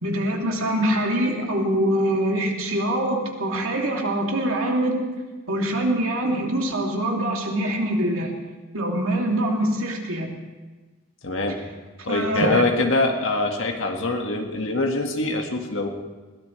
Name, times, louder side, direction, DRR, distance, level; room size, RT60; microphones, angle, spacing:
voice 1, 0.0-5.0 5.5-8.3 8.7-10.3 12.1-12.6, right 1 dB, 80° right, -1 dB, 2.8 m, -24 dB
voice 2, 11.2-11.6 12.0-15.9, left 2 dB, 65° left, 3 dB, 1.9 m, -24 dB
21.5 x 17.5 x 3.3 m, 1.3 s
head